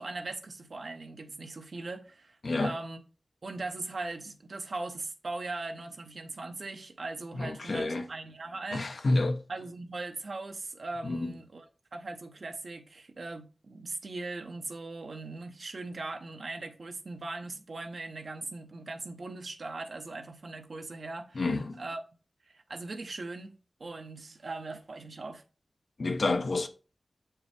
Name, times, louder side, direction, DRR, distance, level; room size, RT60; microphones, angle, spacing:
voice 1, 0.0-3.0 3.4-8.9 9.5-11.7 11.9-21.4 21.8-22.0 22.5-25.4, right 3 dB, 70° right, 0.9 m, -40 dB
voice 2, 7.3-8.0 8.7-9.4 11.0-11.3 21.3-21.8 26.0-26.7, left 2 dB, 70° left, 0.8 m, -29 dB
7.0 x 4.7 x 3.3 m
cardioid pair, 55°, 0 cm